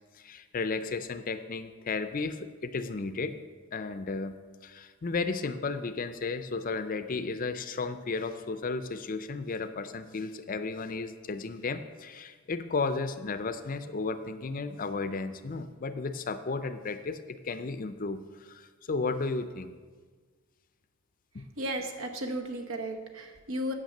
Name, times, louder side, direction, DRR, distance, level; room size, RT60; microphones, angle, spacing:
voice 1, 0.2-3.4 3.7-4.4 4.6-19.8 21.3-21.4, left 4 dB, 40° left, 11 dB, 0.5 m, -34 dB
voice 2, 21.6-23.7, right 1 dB, 70° right, 4 dB, 1.1 m, -34 dB
9.2 x 6.0 x 7.2 m, 1.5 s
head